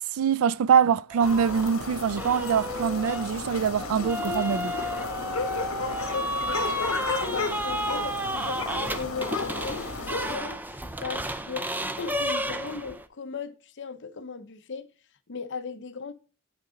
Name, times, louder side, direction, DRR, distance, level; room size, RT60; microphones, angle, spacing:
voice 1, 0.1-4.7, right 7 dB, 80° right, 0.4 m, -24 dB
sound 1, 1.1-1.7 2.2-13.1, equal, 10° right, 0.5 m, -32 dB
sound 2, 1.2-10.4, left 3 dB, 75° left, 1.6 m, -33 dB
voice 2, 6.1-6.8 7.2-14.9 15.3-16.1, left 5 dB, 60° left, 0.8 m, -37 dB
9.3 x 3.7 x 5.1 m
head